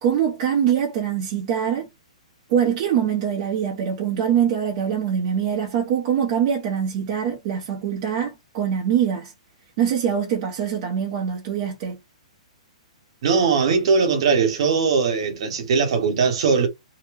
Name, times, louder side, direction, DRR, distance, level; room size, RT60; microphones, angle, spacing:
voice 1, 0.0-1.9 2.5-9.3 9.8-12.0, right 8 dB, 30° right, 0.7 m, -23 dB
voice 2, 13.2-16.7, right 5 dB, 50° right, 1.1 m, -20 dB
2.7 x 2.1 x 3.3 m
hypercardioid pair, 170°, 4 cm